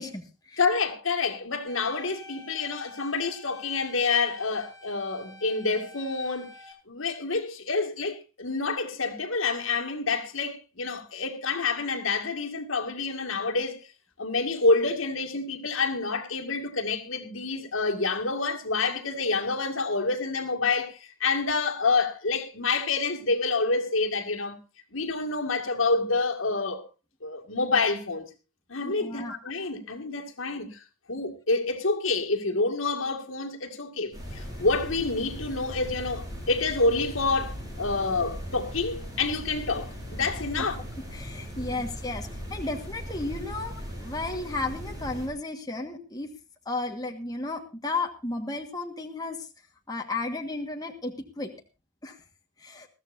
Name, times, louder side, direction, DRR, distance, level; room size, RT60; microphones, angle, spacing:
voice 1, 0.0-0.6 28.8-29.3 40.6-40.7 41.1-43.7 44.0-46.3 46.6-49.5 49.9-51.5 52.0-52.2 52.6-52.9, left 2 dB, 20° left, 1.5 m, -33 dB
voice 2, 0.6-6.5 6.9-13.8 14.2-24.6 24.9-26.8 27.2-28.3 28.7-40.8, left 3 dB, 75° left, 2.0 m, -28 dB
sound 1, 1.7-6.7, left 2 dB, 80° right, 7.4 m, -48 dB
sound 2, 34.1-45.3, equal, 20° right, 5.4 m, -38 dB
21.0 x 14.0 x 2.6 m
head